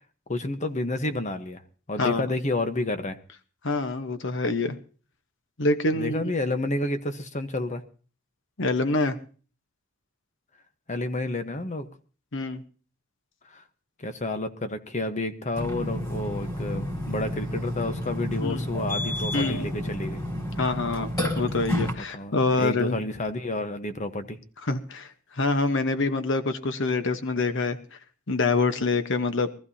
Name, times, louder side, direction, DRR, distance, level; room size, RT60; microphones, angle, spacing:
voice 1, 0.3-1.6 1.9-3.2 5.9-7.8 10.9-11.9 13.5-13.6 14.0-20.2 22.1-24.4, left 2 dB, 35° left, 9 dB, 1.1 m, -30 dB
voice 2, 3.6-4.8 5.6-6.2 8.6-9.2 12.3-12.6 18.4-18.7 19.3-19.7 20.6-23.0 24.6-28.0 28.3-29.5, left 3 dB, 65° left, 9 dB, 1.1 m, -26 dB
Burping eructation, 15.6-21.9, left 1 dB, 20° left, 4.4 m, -30 dB
23.0 x 14.5 x 2.8 m, 0.39 s
head